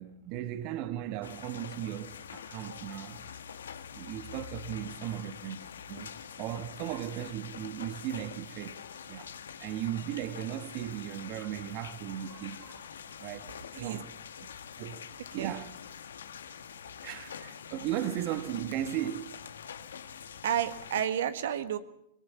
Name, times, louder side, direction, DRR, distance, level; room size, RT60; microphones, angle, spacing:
voice 1, 0.0-3.3 3.9-8.8 9.1-9.3 9.6-14.1 14.8-15.7 17.0-19.4, right 12 dB, 50° right, 1.3 m, -37 dB
sound 1, 1.2-21.1, left 7 dB, 85° left, 1.4 m, -45 dB
voice 2, 20.4-21.8, right 9 dB, 75° right, 1.6 m, -31 dB
22.5 x 18.0 x 7.0 m
hypercardioid pair, 120°, 0 cm